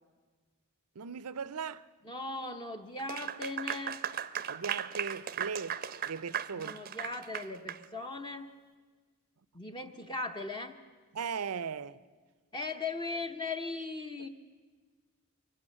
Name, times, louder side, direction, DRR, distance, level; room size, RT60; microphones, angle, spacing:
voice 1, 1.0-1.8 4.5-6.7 11.1-12.0 14.2-14.3, right 6 dB, 85° right, 0.6 m, -38 dB
voice 2, 2.0-4.0 6.5-8.5 9.5-10.7 12.5-14.3, left 3 dB, 20° left, 0.8 m, -38 dB
Clapping / Applause, 3.0-7.8, right 8 dB, 40° right, 0.6 m, -37 dB
24.0 x 15.0 x 8.9 m
head